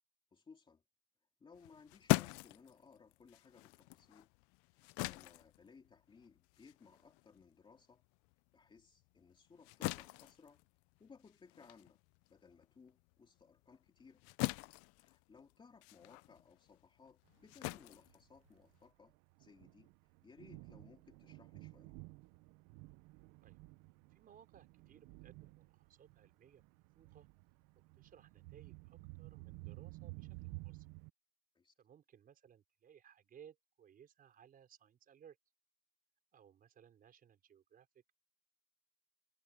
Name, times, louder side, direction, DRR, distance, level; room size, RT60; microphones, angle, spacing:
voice 1, 0.3-0.8 1.4-4.3 4.7-8.0 8.5-10.6 11.0-12.0 12.3-14.2 15.0-19.9 20.2-21.9 31.5-31.7, left 5 dB, 15° left, 2.8 m, -62 dB
sound 1, 1.5-8.3 8.7-18.9, left 24 dB, 45° left, 0.4 m, -42 dB
Thunder, 17.4-31.1, right 23 dB, 55° right, 0.8 m, -54 dB
voice 2, 24.1-27.3 27.9-30.9 31.8-35.4 36.3-38.1, right 8 dB, 25° right, 5.1 m, -62 dB
cardioid pair, 160°, 32 cm